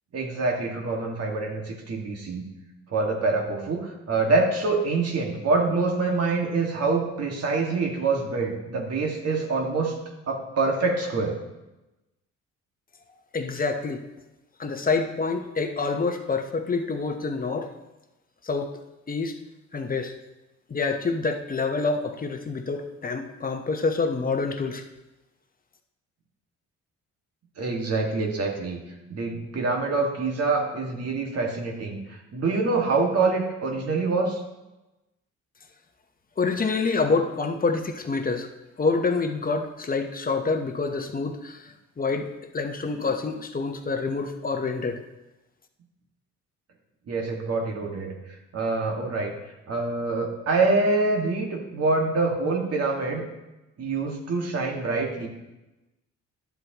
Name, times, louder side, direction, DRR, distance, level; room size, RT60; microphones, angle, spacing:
voice 1, 0.1-2.4 2.9-10.0 10.3-11.4 27.6-28.8 29.1-34.4 47.1-48.2 48.5-49.3 49.7-53.2 53.8-55.3, right 3 dB, 55° right, 0 dB, 2.0 m, -25 dB
voice 2, 13.3-14.0 14.6-17.7 18.4-18.7 19.1-19.4 19.7-20.1 20.7-24.8 36.4-38.5 38.8-45.0, left 4 dB, 30° left, 5 dB, 1.0 m, -27 dB
12.0 x 7.8 x 3.0 m, 1.0 s
cardioid pair, 90°, 30 cm